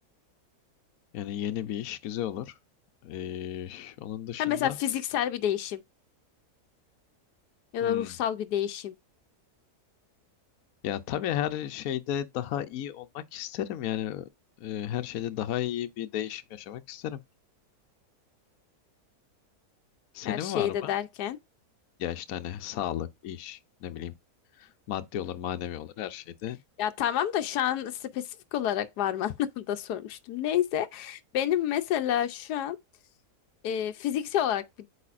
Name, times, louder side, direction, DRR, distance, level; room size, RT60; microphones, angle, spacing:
voice 1, 1.1-2.6 3.0-4.8 7.8-8.1 10.8-14.3 14.6-17.2 20.1-20.9 22.0-24.1 24.6-26.6, left 11 dB, 70° left, 1.1 m, -34 dB
voice 2, 4.4-5.8 7.7-8.9 20.2-21.4 26.8-32.8 33.6-34.9, left 10 dB, 85° left, 1.2 m, -29 dB
8.4 x 4.9 x 2.5 m
omnidirectional pair, 1.7 m